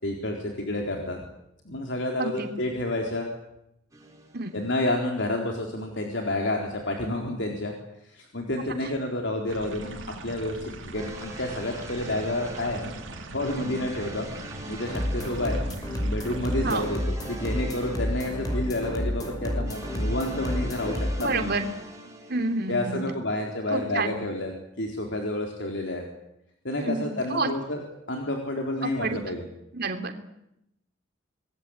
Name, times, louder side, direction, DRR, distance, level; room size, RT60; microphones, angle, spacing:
voice 1, 0.0-1.2 1.6-3.3 4.5-7.7 8.0-10.0 10.2-12.9 13.3-14.3 14.7-15.6 16.0-17.0 17.3-21.6 22.7-24.5 24.8-26.0 26.6-29.4, left 1 dB, 65° left, 1 dB, 4.1 m, -29 dB
sound 1, 3.9-5.1 10.9-22.9, right 1 dB, 15° right, 5.6 m, -44 dB
sound 2, 9.5-16.9, right 2 dB, 90° right, 4.0 m, -41 dB
sound 3, 14.8-21.3, equal, 20° left, 6.0 m, -30 dB
voice 2, 21.2-21.7 22.3-23.0 23.7-24.1 26.8-27.5 28.8-29.4 29.7-30.2, right 3 dB, 55° right, 6 dB, 3.3 m, -29 dB
26.5 x 21.0 x 9.0 m, 0.82 s
head